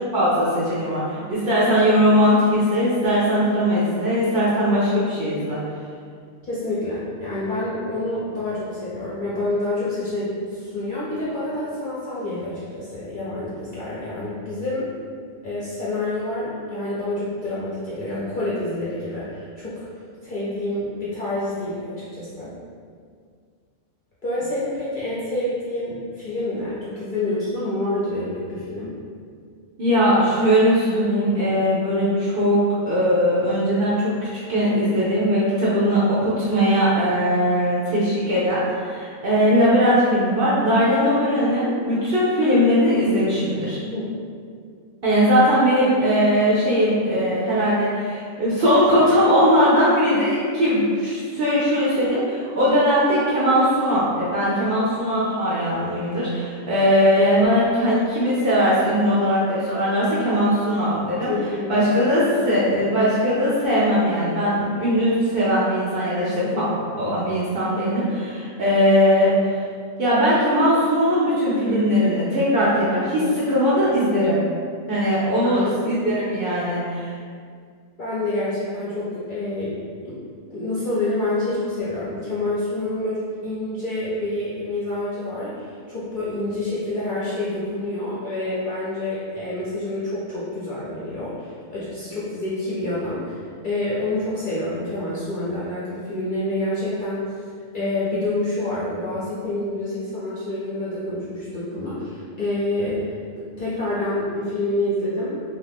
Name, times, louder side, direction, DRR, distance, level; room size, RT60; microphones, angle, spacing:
voice 1, 0.1-5.6 29.8-43.8 45.0-61.3 61.7-66.7 67.0-69.3 70.0-74.4 74.9-77.1, equal, 55° right, -8 dB, 0.6 m, -20 dB
voice 2, 6.4-14.9 15.4-19.9 20.2-22.5 24.2-29.0 43.8-44.1 61.3-61.8 62.3-62.6 66.4-66.7 67.6-67.7 75.4-75.8 78.0-79.8 80.0-80.2 80.5-97.3 97.7-105.4, left 2 dB, 55° left, -9 dB, 0.6 m, -27 dB
2.6 x 2.5 x 3.4 m, 2.1 s
omnidirectional pair, 1.4 m